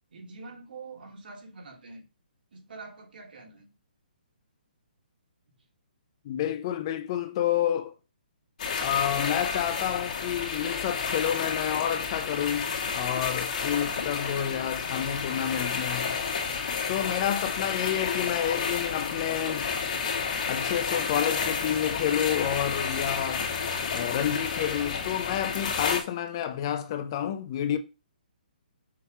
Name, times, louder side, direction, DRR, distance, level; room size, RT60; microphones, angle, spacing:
voice 1, 0.1-2.0 2.5-3.7, right 3 dB, 70° right, 2.7 m, -45 dB
voice 2, 6.2-7.9 8.8-16.2 16.9-19.7 20.4-23.5 23.9-27.8, left 10 dB, 30° left, 0.6 m, -29 dB
sound 1, 8.6-26.0, left 5 dB, 50° left, 2.0 m, -31 dB
6.5 x 3.5 x 5.5 m
hypercardioid pair, 160°, 5 cm